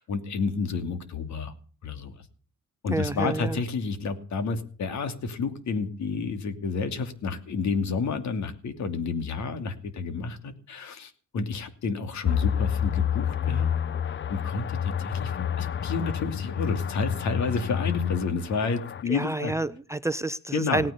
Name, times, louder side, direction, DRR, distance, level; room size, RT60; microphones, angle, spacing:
voice 1, 0.0-1.5 1.8-2.1 2.8-13.7 14.3-19.5 20.5-20.8, left 4 dB, 65° left, 2.7 m, -30 dB
voice 2, 2.9-3.6 19.1-20.9, right 2 dB, 10° right, 0.7 m, -29 dB
sound 1, 12.2-19.0, left 8 dB, 40° left, 0.7 m, -29 dB
17.5 x 9.4 x 6.8 m
cardioid pair, 90°, 30 cm